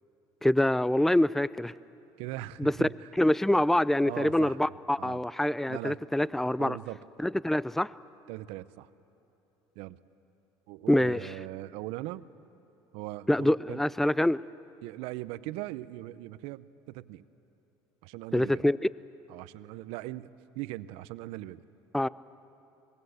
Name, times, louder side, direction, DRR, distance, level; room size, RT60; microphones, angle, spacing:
voice 1, 0.4-1.7 2.6-2.9 3.2-6.8 7.2-7.9 10.9-11.2 13.3-14.4 18.3-18.8 21.9-22.1, left 1 dB, 5° left, 19 dB, 0.4 m, -25 dB
voice 2, 2.2-3.1 4.0-4.6 5.0-5.2 5.7-6.0 6.6-7.0 8.3-8.9 9.8-10.0 10.7-12.2 12.9-13.8 14.8-17.2 18.0-18.6 19.3-21.6, right 16 dB, 80° right, 16 dB, 0.7 m, -40 dB
26.5 x 20.0 x 8.0 m, 3.0 s
supercardioid pair, 95°, 10 cm